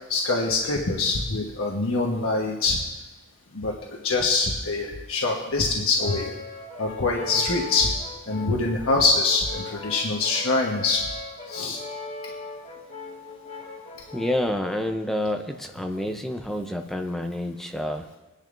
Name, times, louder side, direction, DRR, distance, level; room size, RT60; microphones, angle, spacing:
voice 1, 0.1-2.8 3.5-6.3 6.8-7.9 8.3-11.0 11.5-11.8 12.2-12.3, left 3 dB, 85° left, -1 dB, 1.3 m, -24 dB
Brass instrument, 6.0-14.6, left 3 dB, 30° left, 1.9 m, -39 dB
voice 2, 14.1-18.2, left 1 dB, ahead, 4 dB, 0.6 m, -28 dB
21.5 x 10.5 x 2.6 m, 1.1 s
head